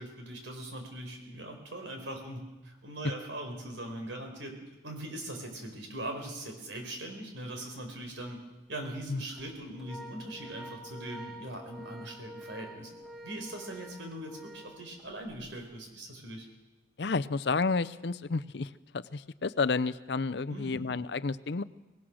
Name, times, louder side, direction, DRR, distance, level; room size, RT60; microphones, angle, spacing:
voice 1, 0.0-4.5 4.8-8.4 8.7-12.9 13.2-16.5 20.5-20.8, right 1 dB, 85° right, 4 dB, 4.6 m, -41 dB
Organ, 7.6-7.8 8.2-8.3 9.2-15.5, right 1 dB, ahead, 1.6 m, -48 dB
voice 2, 17.0-21.6, left 4 dB, 65° left, 14 dB, 0.6 m, -31 dB
24.5 x 18.5 x 6.4 m, 1.1 s
head